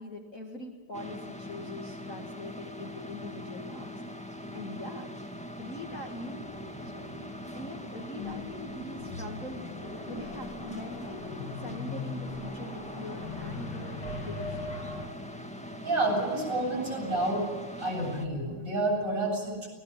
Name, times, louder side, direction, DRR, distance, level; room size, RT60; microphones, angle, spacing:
voice 1, 0.0-4.0 4.5-6.4 6.8-7.1 7.5-9.7 10.0-11.0 11.6-14.7, left 1 dB, 40° left, 1 dB, 2.2 m, -42 dB
sound 1, 0.9-18.3, equal, 5° left, 1.0 m, -42 dB
sound 2, 6.4-15.1, left 3 dB, 85° left, 3.7 m, -40 dB
voice 2, 15.8-17.5 17.8-19.7, right 2 dB, 35° right, -2 dB, 8.4 m, -29 dB
24.0 x 18.5 x 7.3 m, 1.4 s
omnidirectional pair, 2.4 m